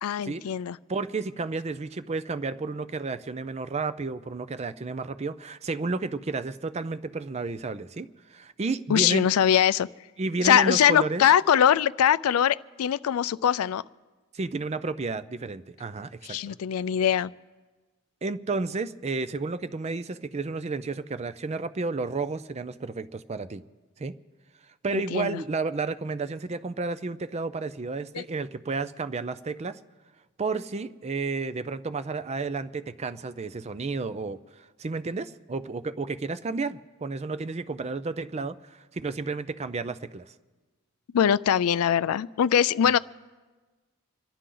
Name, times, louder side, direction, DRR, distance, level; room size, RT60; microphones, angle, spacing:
voice 1, 0.0-0.8 8.9-9.9 10.4-13.8 16.2-17.3 24.9-25.4 28.1-28.2 41.1-43.0, left 9 dB, 80° left, 17 dB, 0.4 m, -22 dB
voice 2, 0.9-9.3 10.2-11.2 14.3-16.6 18.2-23.6 24.0-24.1 24.8-29.8 30.4-34.4 34.8-40.3, right 3 dB, 30° right, 13 dB, 0.4 m, -32 dB
27.0 x 11.5 x 3.8 m, 1.3 s
head